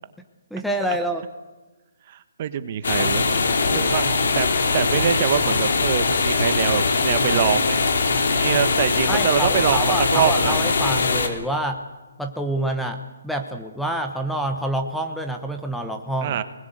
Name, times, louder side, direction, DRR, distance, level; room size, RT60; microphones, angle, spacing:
voice 1, 0.5-1.2 3.6-4.1 9.1-11.8 12.2-16.4, right 1 dB, ahead, 5 dB, 1.0 m, -27 dB
voice 2, 2.1-3.3 3.7-7.9 8.3-10.6 16.2-16.4, right 10 dB, 35° right, 12 dB, 1.2 m, -24 dB
sound 1, 2.8-11.3, left 4 dB, 65° left, 3.4 m, -21 dB
22.5 x 20.5 x 8.1 m, 1.2 s
hypercardioid pair, 165°, 0 cm